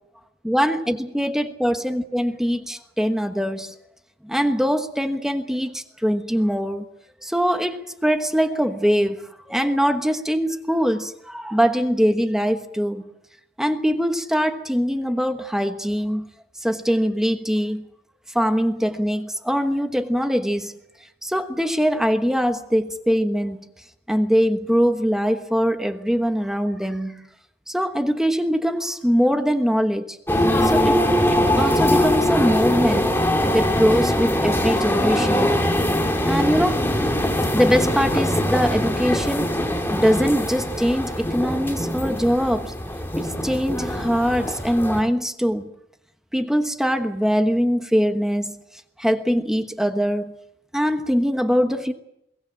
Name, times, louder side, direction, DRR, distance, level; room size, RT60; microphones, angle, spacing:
voice 1, 0.4-3.7 4.2-6.9 7.2-13.0 13.6-16.2 16.6-17.8 18.3-20.7 21.2-23.6 24.1-27.2 27.7-30.2 30.6-31.0 31.3-33.1 33.5-35.5 36.2-36.9 37.5-39.5 39.9-42.7 43.2-45.7 46.3-48.5 49.0-50.3 50.7-51.9, equal, 5° right, 1.2 m, -22 dB
sound 1, 30.3-45.0, left 1 dB, 15° left, 2.3 m, -22 dB
22.5 x 17.5 x 7.6 m
head